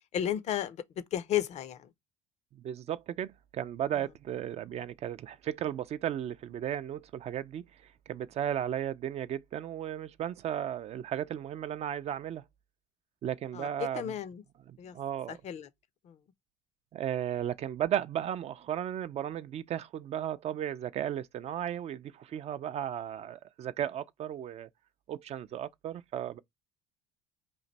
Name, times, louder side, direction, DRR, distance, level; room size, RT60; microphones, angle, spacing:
voice 1, 0.1-1.9 13.5-13.7 13.9-14.4 14.8-14.9 15.3-15.7 16.1-16.2, left 11 dB, 45° left, 0.5 m, -33 dB
voice 2, 2.5-7.6 8.1-12.4 13.2-14.1 14.7-15.4 16.9-24.7 25.1-26.4, right 10 dB, 40° right, 0.4 m, -35 dB
3.1 x 2.5 x 4.0 m
supercardioid pair, 95°, 16 cm